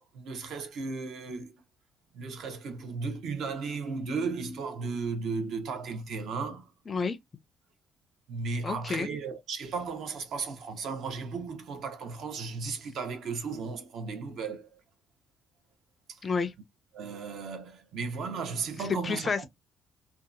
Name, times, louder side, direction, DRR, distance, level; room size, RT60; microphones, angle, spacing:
voice 1, 0.0-1.6 2.1-6.7 8.3-14.8 16.1-16.2 16.9-19.5, right 4 dB, 60° right, 0.8 m, -35 dB
voice 2, 6.9-7.2 8.6-9.1 16.2-16.5 19.0-19.5, left 4 dB, 25° left, 0.4 m, -30 dB
2.7 x 2.3 x 2.4 m
cardioid pair, 165°, 0 cm